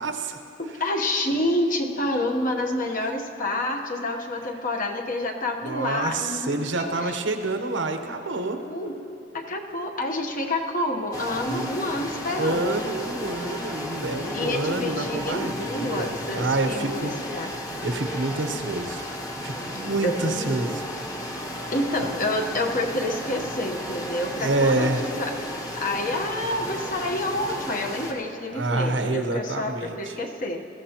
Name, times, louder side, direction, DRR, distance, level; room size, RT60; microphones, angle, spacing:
voice 1, 0.0-0.4 5.6-8.6 11.5-11.7 12.4-19.1 19.4-20.8 21.3-21.5 22.0-22.1 24.3-25.1 28.5-30.2, right 2 dB, 85° right, 5 dB, 1.0 m, -28 dB
voice 2, 0.6-7.2 8.6-12.8 14.3-17.5 20.0-20.8 21.7-25.3 25.7-30.6, left 1 dB, 45° left, 2 dB, 1.1 m, -28 dB
sound 1, 11.1-28.1, left 1 dB, 20° left, 1.1 m, -34 dB
21.0 x 15.0 x 3.0 m, 2.7 s
head